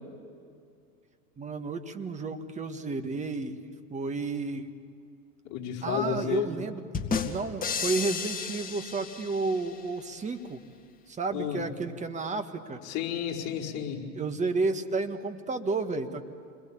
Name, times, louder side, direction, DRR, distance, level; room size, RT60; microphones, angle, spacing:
voice 1, 1.4-3.6 3.9-4.7 5.8-6.9 7.2-10.6 11.1-12.8 14.1-16.2, right 3 dB, 15° right, 7 dB, 1.6 m, -31 dB
voice 2, 5.4-6.5 11.3-11.6 12.9-14.1, left 8 dB, 35° left, -2 dB, 4.8 m, -32 dB
sound 1, 6.9-9.8, left 5 dB, 15° left, 2.1 m, -32 dB
28.5 x 22.0 x 8.7 m, 2.3 s
hypercardioid pair, 115°, 48 cm